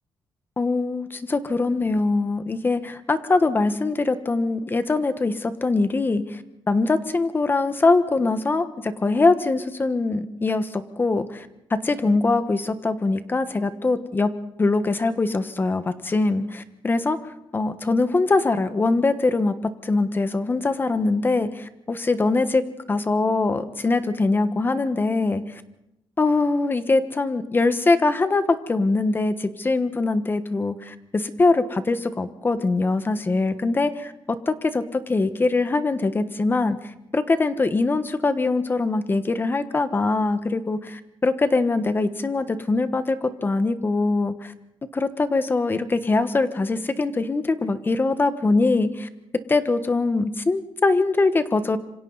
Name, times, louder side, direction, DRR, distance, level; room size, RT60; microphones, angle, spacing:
voice 1, 0.6-6.4 6.7-14.3 14.6-17.2 17.5-25.6 26.2-36.8 37.1-44.5 44.9-49.1 49.5-51.8, left 3 dB, 25° left, 11 dB, 1.3 m, -22 dB
27.0 x 25.5 x 4.1 m, 0.86 s
cardioid pair, 135°, 9 cm